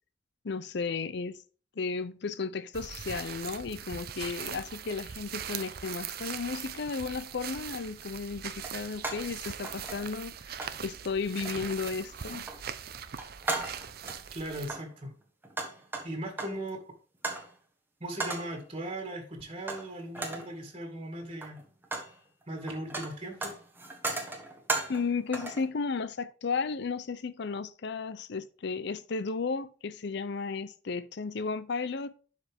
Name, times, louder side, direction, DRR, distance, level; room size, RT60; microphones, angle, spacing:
voice 1, 0.4-1.4 1.8-10.6 10.8-12.5 24.9-32.1, left 4 dB, 65° left, 0.6 m, -34 dB
sound 1, 2.7-14.7, right 8 dB, 55° right, 0.6 m, -41 dB
sound 2, 7.3-7.5 8.6-9.3 9.6-10.3 10.6-10.8 11.4-11.8 12.1-12.6 13.0-14.2 14.6-16.7 17.2-17.5 18.2-18.6 19.7-19.9 20.1-20.5 21.3-22.1 22.4-25.1 25.3-25.7, right 3 dB, 10° right, 1.3 m, -36 dB
voice 2, 14.3-15.1 16.0-16.8 18.0-21.6 22.5-23.5, right 1 dB, 30° right, 2.1 m, -38 dB
11.0 x 4.9 x 3.5 m
head